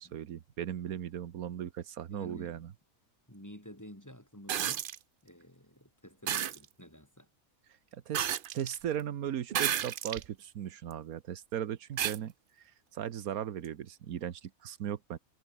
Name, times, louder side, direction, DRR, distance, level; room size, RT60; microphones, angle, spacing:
voice 1, 0.0-2.7 7.9-8.3 8.5-15.2, right 10 dB, 85° right, 1.4 m, -37 dB
voice 2, 2.1-2.7 3.3-4.8 5.2-7.3, equal, 10° left, 4.6 m, -50 dB
sound 1, 4.5-5.0 6.3-6.6 8.1-8.8 9.5-10.3 10.9-11.0 12.0-12.2 13.6-13.7, right 10 dB, 55° right, 0.6 m, -32 dB
omnidirectional pair, 1.5 m